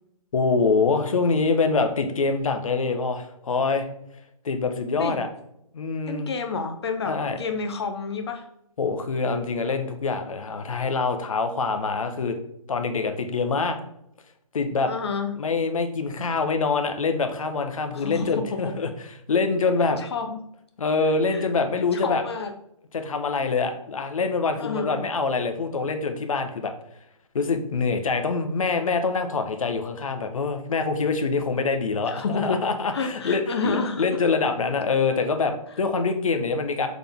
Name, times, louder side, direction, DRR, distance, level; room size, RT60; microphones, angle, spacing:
voice 1, 0.3-3.9 4.4-5.3 5.7-6.3 7.1-7.4 8.8-12.4 12.7-13.8 14.5-14.9 15.4-18.9 19.3-20.0 20.8-22.2 22.9-26.7 27.3-36.9, left 4 dB, 65° left, 6 dB, 1.0 m, -25 dB
voice 2, 6.1-8.4 14.9-15.4 17.9-18.7 20.0-20.4 21.3-21.4 21.8-22.5 24.6-25.0 32.1-32.6 32.9-34.0, left 4 dB, 45° left, 6 dB, 0.7 m, -29 dB
6.6 x 4.1 x 3.5 m, 0.77 s
hypercardioid pair, 155°, 18 cm